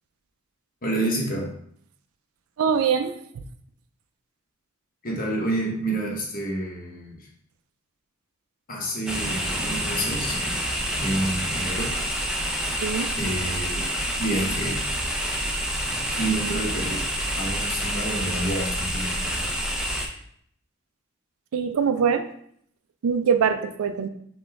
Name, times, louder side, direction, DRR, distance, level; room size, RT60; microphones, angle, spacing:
voice 1, 0.8-1.5 5.0-7.3 8.7-10.4 11.0-12.4 13.2-13.9 14.2-14.8 16.0-17.0 17.3-19.4, right 1 dB, 40° left, -1 dB, 1.0 m, -29 dB
voice 2, 2.6-3.2 12.8-13.2 21.5-22.3 23.0-24.1, right 6 dB, 70° right, 8 dB, 0.4 m, -23 dB
sound 1, 9.1-20.1, equal, 5° right, 0.5 m, -28 dB
5.0 x 2.3 x 3.4 m, 0.66 s
head